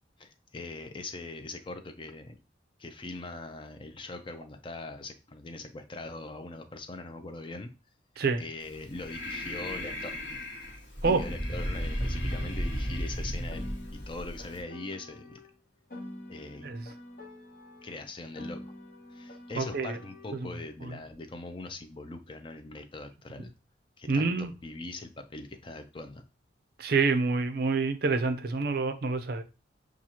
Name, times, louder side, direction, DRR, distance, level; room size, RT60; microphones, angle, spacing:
voice 1, 0.2-2.3 2.8-7.7 8.4-10.2 11.0-15.4 16.3-16.7 17.8-18.6 19.1-23.5 24.0-26.2, left 2 dB, 25° left, 7 dB, 0.4 m, -41 dB
Breathing, 8.6-14.6, equal, 70° left, 1.1 m, -34 dB
Piano, 11.0-15.5 15.9-20.5, left 1 dB, 50° left, 0.9 m, -46 dB
voice 2, 19.6-20.0 20.3-20.5 20.8-21.0 24.1-24.5 26.8-29.4, right 4 dB, 55° right, 8 dB, 0.5 m, -27 dB
6.0 x 2.4 x 2.8 m, 0.30 s
head